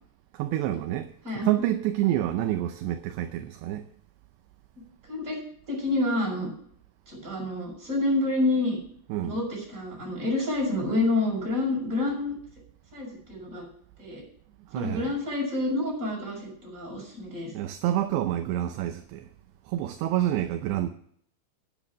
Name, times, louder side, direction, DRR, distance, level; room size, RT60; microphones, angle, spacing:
voice 1, 0.3-1.1 1.4-3.8 9.1-9.4 14.7-15.1 17.5-19.3 19.7-20.9, right 12 dB, 80° right, 2.8 m, -28 dB
voice 2, 1.2-1.6 5.1-5.4 5.7-6.5 7.1-8.8 9.2-12.3 12.9-13.6 14.0-14.2 14.7-17.5, left 2 dB, 15° right, 6.6 m, -28 dB
10.5 x 9.9 x 6.1 m
omnidirectional pair, 5.2 m